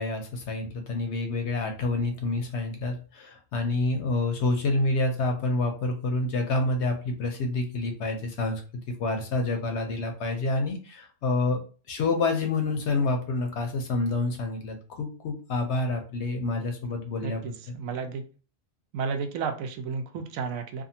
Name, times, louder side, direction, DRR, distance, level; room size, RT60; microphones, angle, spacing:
voice 1, 0.0-11.6 11.9-17.8, left 2 dB, 65° left, 4 dB, 0.8 m, -28 dB
voice 2, 17.2-18.2 18.9-20.8, right 5 dB, 80° right, 6 dB, 1.0 m, -32 dB
2.6 x 2.5 x 2.7 m, 0.37 s
omnidirectional pair, 1.4 m